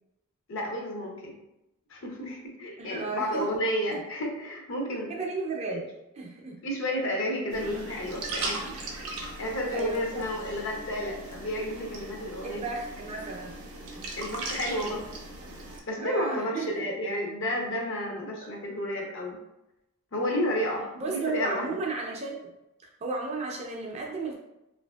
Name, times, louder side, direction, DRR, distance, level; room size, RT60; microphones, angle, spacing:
voice 1, 0.5-1.3 1.9-5.1 5.7-5.8 6.6-8.7 9.2-12.7 14.1-15.0 15.9-19.4 20.1-21.8, equal, 60° left, 0 dB, 0.6 m, -31 dB
voice 2, 2.8-3.5 3.9-4.0 5.1-5.9 6.2-6.6 9.7-10.2 12.4-13.5 13.9-14.1 16.0-16.8 18.4-18.5 21.0-22.5 23.0-24.3, right 3 dB, 30° right, 0 dB, 0.4 m, -34 dB
sound 1, 7.5-15.8, right 2 dB, 85° right, 0.5 m, -38 dB
2.7 x 2.5 x 2.2 m, 0.90 s
head